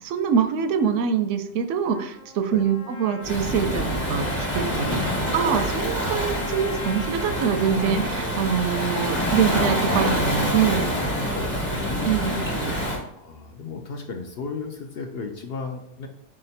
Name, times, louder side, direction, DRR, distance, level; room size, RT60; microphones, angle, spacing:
voice 1, 0.0-4.3 4.5-5.0 5.3-10.9 12.0-12.7, right 7 dB, 85° right, 7 dB, 0.9 m, -24 dB
Trumpet, 1.8-9.9, left 2 dB, 90° left, 1.1 m, -42 dB
Waves surf, 3.2-13.0, equal, 25° left, 1.2 m, -26 dB
voice 2, 4.9-5.4 11.3-12.2 13.1-16.1, left 4 dB, 60° left, 2 dB, 0.8 m, -34 dB
4.3 x 2.9 x 4.1 m, 0.79 s
omnidirectional pair, 1.2 m